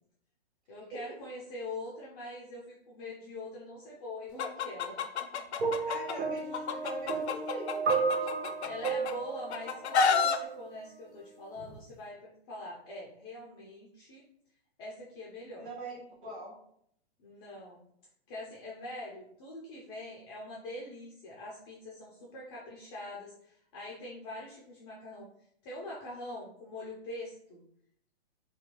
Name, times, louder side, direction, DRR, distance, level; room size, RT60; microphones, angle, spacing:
voice 1, 0.7-5.3 8.6-14.2 14.8-15.7 17.2-17.8 18.3-25.3 25.6-27.6, left 1 dB, 25° left, -4 dB, 0.4 m, -43 dB
Chicken rooster, 4.4-6.1 6.5-9.1 9.5-10.4, left 5 dB, 85° left, 0.5 m, -29 dB
sound 1, 5.6-10.7 11.6-11.8, right 4 dB, 75° right, 0.7 m, -33 dB
voice 2, 5.8-8.7 15.6-16.5, right 1 dB, 20° right, -5 dB, 1.1 m, -42 dB
2.5 x 2.3 x 2.9 m, 0.69 s
hypercardioid pair, 135°, 32 cm